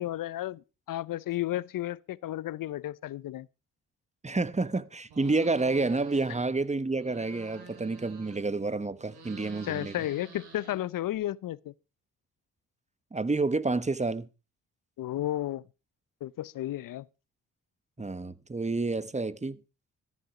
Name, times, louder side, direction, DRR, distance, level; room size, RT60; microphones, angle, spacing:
voice 1, 0.0-3.5 9.6-11.7 15.0-15.6 16.2-17.0, left 14 dB, 60° left, 0.6 m, -33 dB
voice 2, 4.2-9.9 13.1-14.3 18.0-19.6, right 3 dB, 20° right, 1.1 m, -29 dB
sound 1, 5.1-6.5 6.8-8.6 8.9-11.2, right 5 dB, 80° right, 6.1 m, -49 dB
14.0 x 11.0 x 4.9 m
hypercardioid pair, 40°, 38 cm